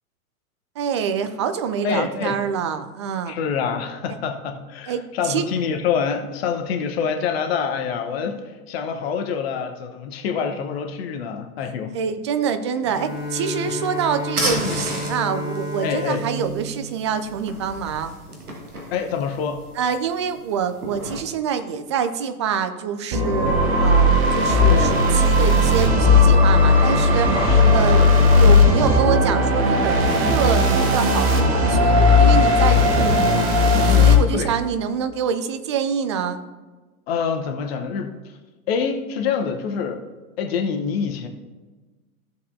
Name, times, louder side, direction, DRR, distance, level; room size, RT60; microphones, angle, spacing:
voice 1, 0.8-3.3 4.9-5.4 11.9-18.1 19.8-27.4 27.7-33.3 33.8-36.4, right 7 dB, 25° right, 9 dB, 0.3 m, -26 dB
voice 2, 1.8-2.4 3.3-12.0 13.6-13.7 14.4-14.8 15.8-16.2 18.9-19.6 24.7-25.1 25.6-25.8 27.4-28.1 28.8-28.9 32.9-34.5 37.1-38.4 38.7-40.0 40.4-41.3, left 6 dB, 45° left, 5 dB, 1.0 m, -26 dB
Bowed string instrument, 12.8-18.1, left 1 dB, 25° left, 3.1 m, -32 dB
sound 1, 12.9-21.2, right 1 dB, 80° right, 1.5 m, -34 dB
sound 2, 23.1-34.1, left 2 dB, 40° right, 1.5 m, -16 dB
15.0 x 6.8 x 2.6 m, 1.3 s
figure-of-eight pair, 95°, 44 cm